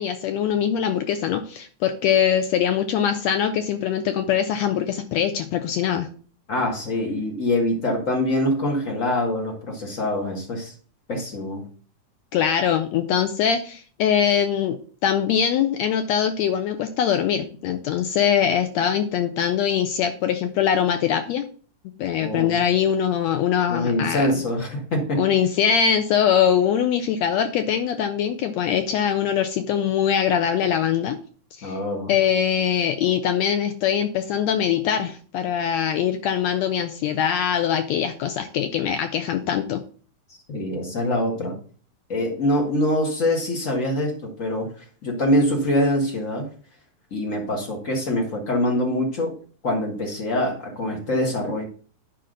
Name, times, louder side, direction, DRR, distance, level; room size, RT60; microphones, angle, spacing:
voice 1, 0.0-6.1 12.3-21.4 22.0-24.3 25.2-31.2 31.6-31.8 32.1-39.8, left 8 dB, 80° left, 7 dB, 1.6 m, -22 dB
voice 2, 6.5-10.7 11.1-11.6 22.2-22.6 23.7-25.3 31.6-32.1 40.5-41.6 42.1-46.5 47.1-49.3 49.6-51.6, left 1 dB, 40° left, 1 dB, 1.2 m, -24 dB
9.9 x 5.2 x 3.8 m, 0.42 s
omnidirectional pair, 3.6 m